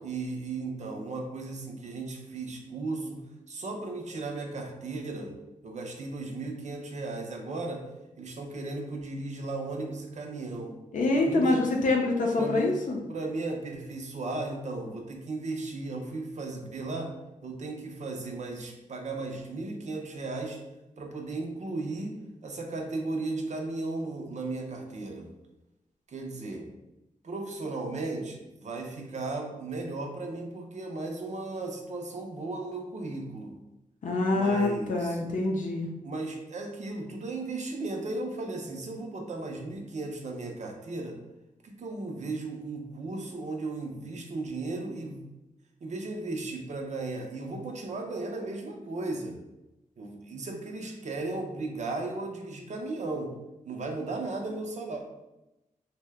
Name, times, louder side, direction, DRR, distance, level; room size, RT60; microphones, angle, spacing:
voice 1, 0.0-5.3 5.6-7.9 8.2-10.7 11.2-11.6 12.4-12.8 13.1-17.1 17.4-20.6 21.0-22.1 22.4-25.3 26.1-26.7 27.2-33.5 34.3-35.2 36.0-41.2 41.6-45.2 45.8-49.4 50.0-53.3 53.6-55.0, right 2 dB, 60° right, 2 dB, 0.6 m, -35 dB
voice 2, 10.9-13.0 34.0-35.9, left 2 dB, 70° left, 0 dB, 0.5 m, -26 dB
2.7 x 2.1 x 3.4 m, 0.97 s
cardioid pair, 75°, 14 cm